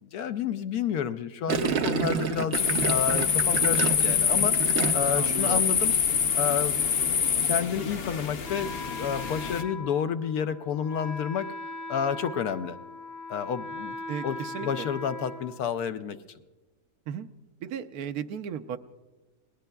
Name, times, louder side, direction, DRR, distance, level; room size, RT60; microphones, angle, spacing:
voice 1, 0.1-4.5 4.9-5.9 6.3-7.0 7.4-11.5 11.9-12.8 13.3-14.0 14.2-16.2, left 7 dB, 75° left, 10 dB, 1.1 m, -30 dB
Gurgling, 1.5-5.3 5.6-5.9, right 6 dB, 60° right, 0.8 m, -29 dB
sound 1, 2.5-9.6, left 7 dB, 55° left, 0.7 m, -25 dB
voice 2, 5.1-5.6 14.1-14.9 17.1-17.3 17.6-18.8, right 8 dB, 75° right, 10 dB, 1.1 m, -35 dB
Wind instrument woodwind instrument, 8.4-16.2, left 2 dB, 20° left, 0.6 m, -40 dB
30.0 x 19.0 x 2.3 m, 1.2 s
omnidirectional pair, 1.6 m